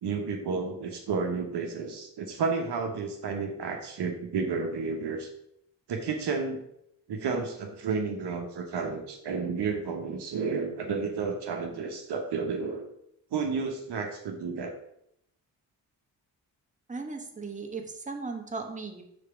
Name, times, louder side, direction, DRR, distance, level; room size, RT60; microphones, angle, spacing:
voice 1, 0.0-5.3 5.9-6.6 7.1-12.9 13.3-14.7, right 5 dB, 60° right, 3 dB, 1.1 m, -31 dB
voice 2, 16.9-19.0, right 4 dB, 15° right, 3 dB, 1.2 m, -37 dB
4.9 x 4.3 x 5.7 m, 0.76 s
hypercardioid pair, 40°, 46 cm